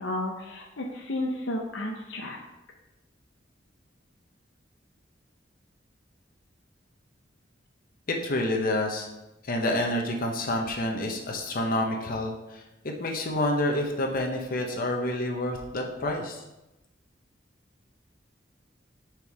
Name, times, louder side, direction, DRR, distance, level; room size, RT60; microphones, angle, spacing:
voice 1, 0.0-2.4, left 1 dB, 75° left, 1 dB, 0.7 m, -32 dB
voice 2, 8.1-9.1 9.4-12.6 13.0-16.4, left 1 dB, 50° left, 2 dB, 0.9 m, -28 dB
5.3 x 4.5 x 4.8 m, 0.96 s
head